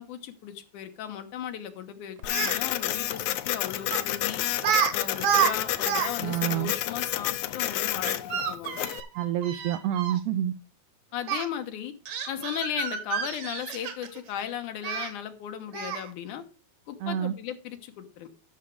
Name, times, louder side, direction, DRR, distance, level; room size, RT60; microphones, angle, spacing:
voice 1, 0.0-4.4 4.9-8.8 11.1-11.9 12.3-16.4 16.9-18.3, left 9 dB, 90° left, 2.7 m, -36 dB
Printer, 2.2-9.0, left 13 dB, 75° left, 1.5 m, -30 dB
Speech, 2.2-2.6 3.9-4.1 4.6-4.9 5.2-6.1 6.4-6.5 8.0-10.2 11.3-11.4 12.1-14.2 14.8-15.1 15.7-16.1, right 8 dB, 65° right, 2.4 m, -29 dB
voice 2, 6.2-6.7 9.2-10.5 17.0-17.3, right 11 dB, 85° right, 1.4 m, -28 dB
12.5 x 6.2 x 4.7 m
omnidirectional pair, 3.5 m